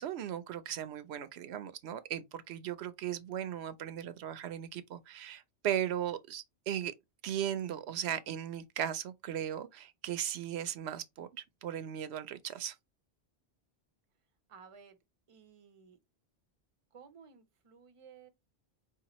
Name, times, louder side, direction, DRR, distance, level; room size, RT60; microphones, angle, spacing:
voice 1, 0.0-6.9 7.2-12.8, right 10 dB, 85° right, 0.9 m, -37 dB
voice 2, 14.5-15.0 15.3-16.0 16.9-18.3, right 6 dB, 35° right, 0.7 m, -56 dB
4.9 x 2.8 x 2.9 m
omnidirectional pair, 1.1 m